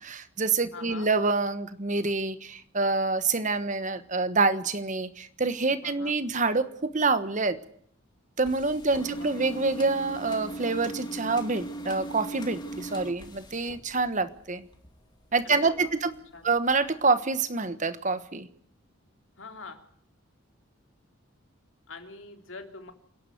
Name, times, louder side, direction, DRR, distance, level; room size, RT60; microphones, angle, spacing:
voice 1, 0.0-7.6 8.4-14.6 15.3-16.1 16.4-18.5, right 3 dB, 35° right, 11 dB, 1.3 m, -27 dB
voice 2, 0.7-1.1 5.8-6.2 8.9-9.3 15.4-15.9 16.3-16.5 19.4-19.8 21.9-22.9, left 3 dB, 65° left, 5 dB, 3.1 m, -44 dB
sound 1, 8.4-14.4 14.7-15.5 15.9-16.2 16.7-16.8 17.0-17.1, right 1 dB, 20° left, 2.4 m, -39 dB
27.5 x 11.0 x 9.5 m, 0.65 s
head